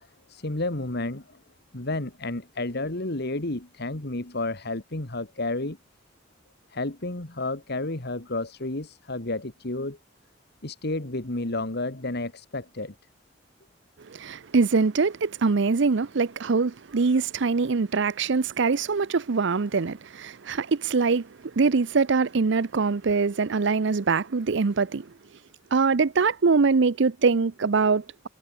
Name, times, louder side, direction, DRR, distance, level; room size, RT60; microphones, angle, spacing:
voice 1, 0.0-1.4 1.7-5.8 6.7-10.0 10.6-12.9, left 2 dB, 60° left, 2.2 m, -31 dB
voice 2, 14.0-25.1 25.7-28.3, right 4 dB, 70° right, 0.6 m, -23 dB
head